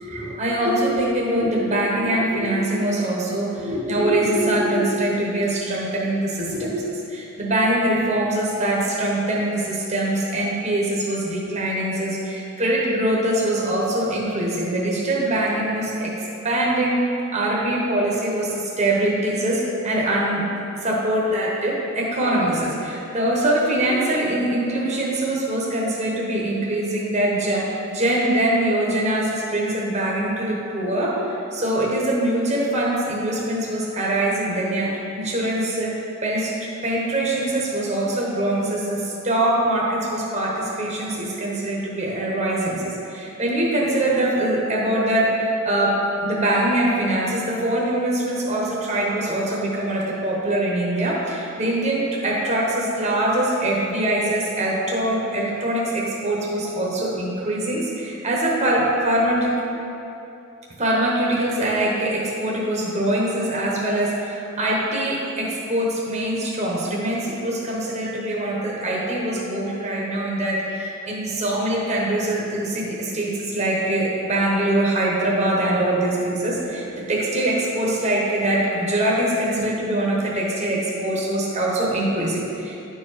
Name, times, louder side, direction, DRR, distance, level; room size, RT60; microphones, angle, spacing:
voice 1, 0.0-6.8 7.1-16.1 16.4-20.4 20.8-59.5 60.8-82.8, right 1 dB, 30° right, -4 dB, 1.1 m, -23 dB
10.5 x 4.5 x 5.0 m, 2.8 s
head